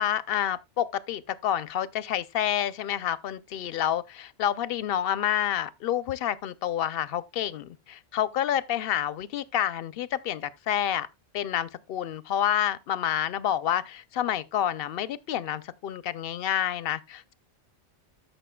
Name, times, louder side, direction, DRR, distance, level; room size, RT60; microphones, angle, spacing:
voice 1, 0.0-11.1 11.3-17.3, left 10 dB, 60° left, 0.7 m, -28 dB
13.5 x 6.4 x 2.2 m
omnidirectional pair, 1.3 m